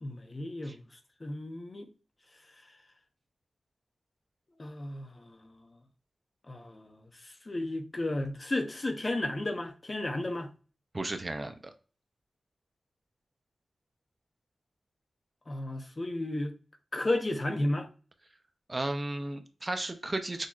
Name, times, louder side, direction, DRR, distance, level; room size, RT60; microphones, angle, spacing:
voice 1, 0.0-0.8 1.2-1.9 4.6-5.6 6.5-10.5 15.5-16.5 16.9-17.9, left 1 dB, 35° left, 1.0 m, -33 dB
voice 2, 10.9-11.7 18.7-20.5, right 2 dB, 30° right, 0.7 m, -34 dB
6.5 x 2.8 x 2.4 m
wide cardioid pair, 75°, 0 cm